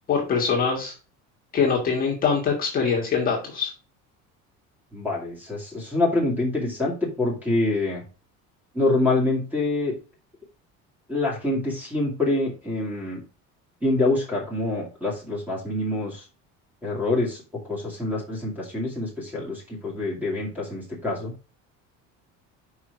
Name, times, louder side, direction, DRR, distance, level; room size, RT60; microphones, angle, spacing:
voice 1, 0.1-0.9 1.5-3.7, left 5 dB, 30° left, -2 dB, 1.6 m, -23 dB
voice 2, 4.9-8.0 8.7-9.9 11.1-13.2 13.8-16.2 16.8-21.3, left 2 dB, 5° right, -2 dB, 2.3 m, -26 dB
5.5 x 4.8 x 4.8 m, 0.33 s
cardioid pair, 175°, 31 cm